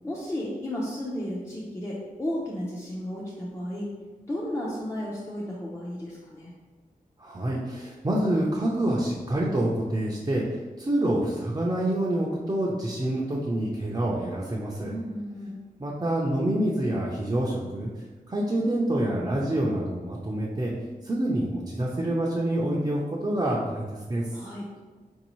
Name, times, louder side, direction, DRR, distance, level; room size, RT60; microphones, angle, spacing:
voice 1, 0.0-3.9 4.3-6.5 14.9-15.6 24.3-24.6, left 1 dB, 20° left, -6 dB, 0.6 m, -33 dB
voice 2, 7.2-10.4 10.8-14.9 15.8-17.9 18.3-20.7 21.0-23.8 24.1-24.2, right 1 dB, 25° right, -5 dB, 0.5 m, -27 dB
3.9 x 2.7 x 3.0 m, 1.3 s
cardioid pair, 60°, 16 cm